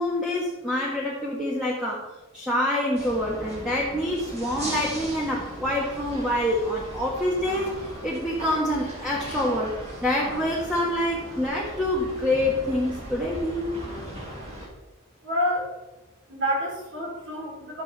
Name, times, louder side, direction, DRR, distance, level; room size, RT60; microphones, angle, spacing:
voice 1, 0.0-2.1 2.3-9.7 10.0-13.8, left 1 dB, 5° right, -5 dB, 1.7 m, -26 dB
sound 1, 2.9-14.7, right 1 dB, 30° right, 4.3 m, -38 dB
voice 2, 15.2-15.7 16.3-17.8, equal, 60° right, -3 dB, 4.3 m, -28 dB
12.0 x 9.0 x 4.3 m, 1.1 s
head